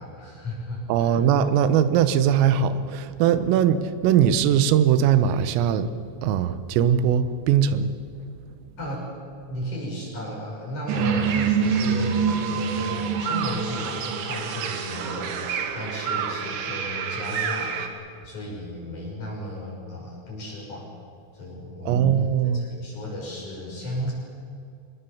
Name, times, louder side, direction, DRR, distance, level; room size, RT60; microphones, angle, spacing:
voice 1, 0.0-1.2 8.8-9.1 9.5-17.7 18.2-20.9 21.3-22.2 22.5-24.1, left 1 dB, 40° left, -3 dB, 7.6 m, -34 dB
voice 2, 0.9-5.9 6.2-7.9 21.9-22.6, right 9 dB, 90° right, 12 dB, 3.7 m, -20 dB
sound 1, 10.9-17.9, right 6 dB, 70° right, 3.9 m, -26 dB
26.0 x 21.0 x 7.2 m, 2.4 s
omnidirectional pair, 5.8 m